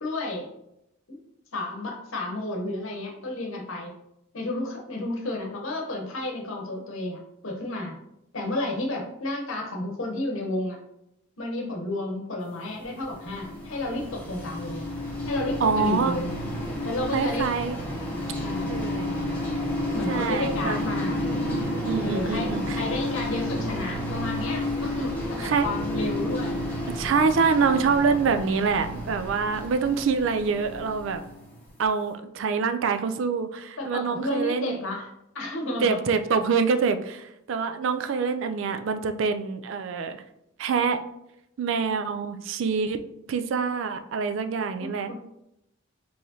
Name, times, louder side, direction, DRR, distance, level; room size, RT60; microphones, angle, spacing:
voice 1, 0.0-0.5 1.5-3.9 4.3-8.0 8.3-10.8 11.4-14.8 15.3-16.3 16.8-17.5 18.4-18.8 19.9-21.3 22.0-26.6 33.8-35.1 35.3-36.0 44.8-45.1, left 2 dB, 70° left, 1 dB, 0.9 m, -31 dB
sound 1, 12.7-31.7, left 1 dB, 10° left, 0.8 m, -31 dB
voice 2, 15.6-16.1 17.1-17.8 18.7-19.1 20.1-20.8 21.8-22.8 25.4-25.7 26.9-31.2 31.8-34.8 35.8-40.2 40.6-41.0 41.6-43.0 43.3-45.1, right 5 dB, 60° right, 9 dB, 0.3 m, -25 dB
4.6 x 3.1 x 2.7 m, 0.82 s
head